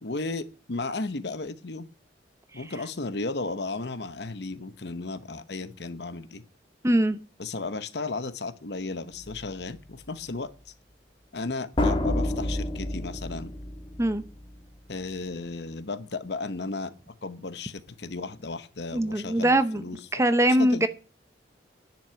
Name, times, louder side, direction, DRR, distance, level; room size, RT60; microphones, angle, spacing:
voice 1, 0.0-1.9 2.5-6.4 7.4-10.5 11.3-13.5 14.9-16.9 17.2-20.0 20.6-20.9, left 3 dB, 65° left, 0.9 m, -34 dB
voice 2, 6.8-7.2 14.0-14.2 18.9-19.8 20.1-20.9, right 1 dB, 15° right, 0.8 m, -22 dB
sound 1, 9.1-9.4 11.8-14.4, left 1 dB, 30° left, 1.9 m, -29 dB
10.5 x 6.1 x 8.5 m
head